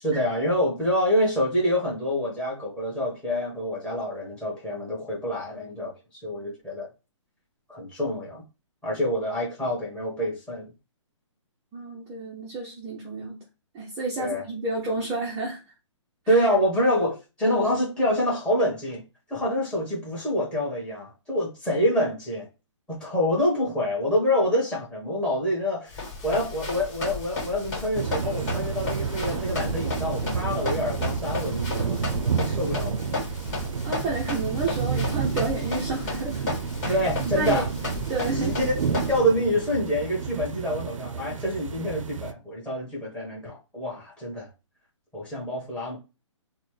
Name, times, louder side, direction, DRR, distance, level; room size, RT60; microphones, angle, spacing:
voice 1, 0.0-5.9 6.2-6.9 7.7-8.4 8.8-10.7 14.2-14.4 16.3-19.0 19.3-22.5 22.9-26.0 26.2-33.2 36.9-37.7 38.3-44.5 45.1-46.0, equal, 5° left, 1.2 m, -26 dB
voice 2, 11.7-13.4 13.7-15.6 16.3-16.4 33.8-36.4 36.8-37.0 37.2-37.6 38.1-38.6, right 3 dB, 15° right, 0.5 m, -30 dB
Run, 25.9-39.2, left 3 dB, 35° left, 1.8 m, -34 dB
sound 1, 27.9-42.3, right 6 dB, 85° right, 0.5 m, -30 dB
4.1 x 2.1 x 3.1 m
hypercardioid pair, 160°, 16 cm